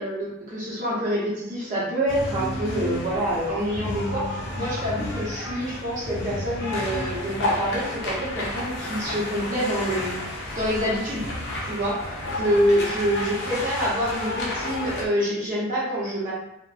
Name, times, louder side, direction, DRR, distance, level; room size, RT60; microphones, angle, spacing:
voice 1, 0.0-10.2 10.5-11.2 11.7-16.3, equal, 40° right, -7 dB, 0.9 m, -26 dB
sound 1, 2.1-15.1, left 1 dB, 55° left, 0.5 m, -31 dB
2.5 x 2.1 x 2.4 m, 0.85 s
head